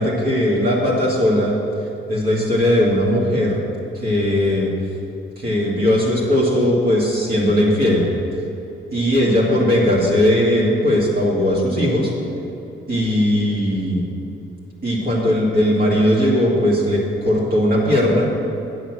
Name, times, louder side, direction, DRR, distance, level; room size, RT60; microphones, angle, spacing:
voice 1, 0.0-1.5 2.1-3.6 3.9-4.7 5.4-8.0 8.9-12.1 12.9-14.1 14.8-18.3, left 1 dB, 45° right, -5 dB, 2.2 m, -18 dB
8.8 x 8.2 x 6.2 m, 2.8 s
cardioid pair, 130°, 21 cm